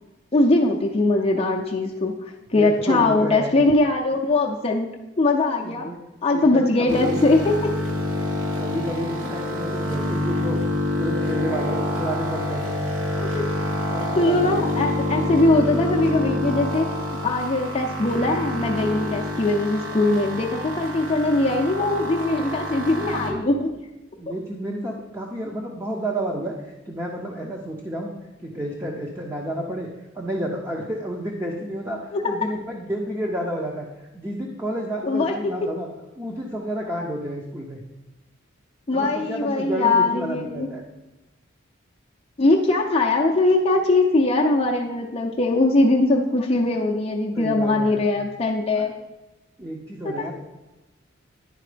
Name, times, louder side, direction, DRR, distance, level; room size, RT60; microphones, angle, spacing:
voice 1, 0.3-4.9 5.2-5.9 6.2-7.7 13.2-13.5 14.2-16.9 17.2-23.7 32.1-32.4 35.0-35.3 38.9-40.7 42.4-48.9 50.2-50.3, left 2 dB, 30° left, 0 dB, 0.5 m, -21 dB
voice 2, 2.5-3.6 5.6-6.0 6.3-7.2 8.6-10.6 11.0-12.7 13.9-14.5 23.0-23.5 24.2-28.1 28.4-35.9 36.2-37.8 38.9-40.8 47.3-48.0 48.8-48.9 49.6-50.3, right 1 dB, 15° right, -1 dB, 0.7 m, -30 dB
sound 1, 6.9-23.3, left 1 dB, 80° right, 1.4 m, -27 dB
10.5 x 4.3 x 5.0 m, 1.1 s
head